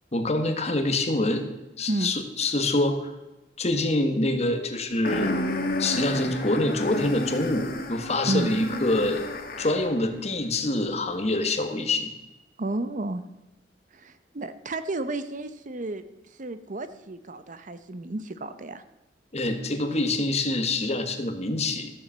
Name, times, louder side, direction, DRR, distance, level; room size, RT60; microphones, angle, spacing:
voice 1, 0.1-1.5 1.8-3.1 3.6-5.4 5.8-9.3 9.6-12.1 19.3-21.9, left 2 dB, 40° left, 7 dB, 1.5 m, -26 dB
sound 1, 5.0-9.9, left 1 dB, 55° left, 1.5 m, -31 dB
voice 2, 12.6-13.2 13.9-16.0 16.4-18.8, right 2 dB, 45° right, 11 dB, 0.8 m, -31 dB
14.0 x 7.1 x 7.4 m, 1.0 s
head